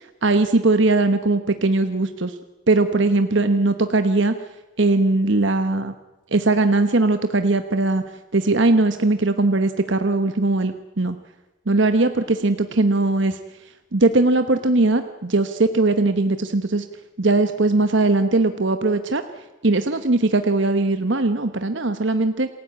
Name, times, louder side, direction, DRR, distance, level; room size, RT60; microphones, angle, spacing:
voice 1, 0.2-2.3 2.7-4.3 4.8-5.9 6.3-8.0 8.3-11.2 11.7-13.4 13.9-16.8 17.2-19.2 19.6-22.5, right 2 dB, 55° right, 9 dB, 1.1 m, -19 dB
28.0 x 16.0 x 8.8 m, 1.1 s
head